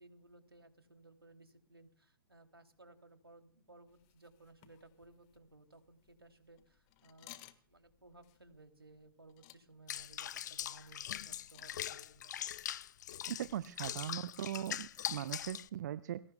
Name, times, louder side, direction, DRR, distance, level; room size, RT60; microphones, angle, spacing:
voice 1, 0.0-12.5, right 2 dB, 85° right, 6 dB, 2.9 m, -60 dB
sound 1, 3.9-12.7, left 16 dB, 30° left, 1.5 m, -62 dB
Water / Bathtub (filling or washing), 9.9-15.7, left 11 dB, 50° left, 0.7 m, -42 dB
voice 2, 13.3-16.2, right 11 dB, 50° right, 14 dB, 0.7 m, -40 dB
29.0 x 21.5 x 2.3 m, 0.43 s
figure-of-eight pair, 115°, 12 cm